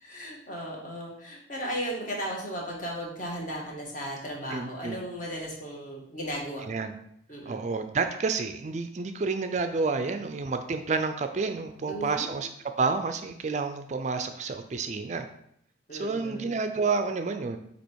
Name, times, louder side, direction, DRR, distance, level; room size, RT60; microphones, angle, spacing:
voice 1, 0.0-6.6 7.3-7.6 11.9-12.4 15.9-16.6, equal, 45° left, -3 dB, 1.7 m, -36 dB
voice 2, 4.5-5.0 6.7-7.0 7.5-12.5 12.8-15.3 15.9-17.6, right 4 dB, 40° right, 8 dB, 0.4 m, -29 dB
8.4 x 2.9 x 4.6 m, 0.72 s
head